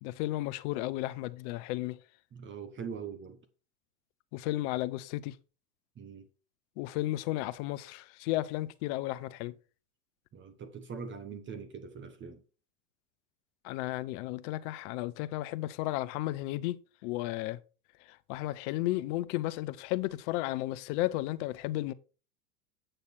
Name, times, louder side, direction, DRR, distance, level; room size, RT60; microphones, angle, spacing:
voice 1, 0.0-2.0 4.3-5.4 6.8-9.5 13.6-16.8 17.0-17.6 18.0-21.9, left 17 dB, 45° left, 0.7 m, -33 dB
voice 2, 2.3-3.4 6.0-6.3 10.3-12.4, right 6 dB, 25° right, 1.1 m, -42 dB
8.9 x 6.6 x 4.2 m
hypercardioid pair, 95°, 47 cm